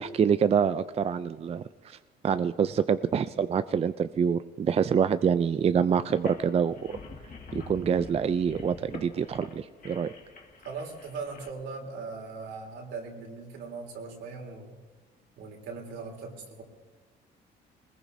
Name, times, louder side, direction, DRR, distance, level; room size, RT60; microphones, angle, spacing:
voice 1, 0.0-2.0 2.2-6.7 7.7-10.1, right 7 dB, 35° right, 12 dB, 0.4 m, -26 dB
sound 1, 6.1-11.5, left 3 dB, 45° left, 2.0 m, -45 dB
voice 2, 10.6-14.7 15.4-16.6, right 4 dB, 80° right, 0 dB, 3.4 m, -39 dB
22.0 x 20.0 x 2.7 m, 1.3 s
cardioid pair, 95°, 19 cm